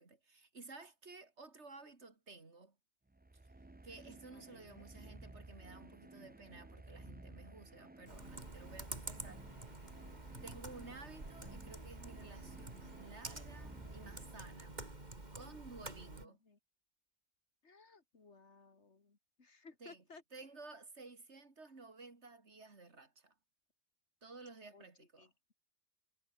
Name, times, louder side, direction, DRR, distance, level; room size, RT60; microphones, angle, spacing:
voice 1, 0.0-2.8 3.8-9.9 10.4-14.8 15.3-16.4 19.8-20.0 20.3-23.3 24.2-25.3, right 3 dB, 70° right, 3.0 m, -54 dB
sound 1, 3.1-14.8, right 2 dB, 15° right, 0.4 m, -55 dB
voice 2, 4.3-4.8 16.2-16.6 17.6-20.2 24.7-24.9 25.2-25.3, left 4 dB, 75° left, 2.8 m, -60 dB
Computer keyboard, 8.1-16.3, right 2 dB, 40° right, 3.3 m, -49 dB
omnidirectional pair, 1.2 m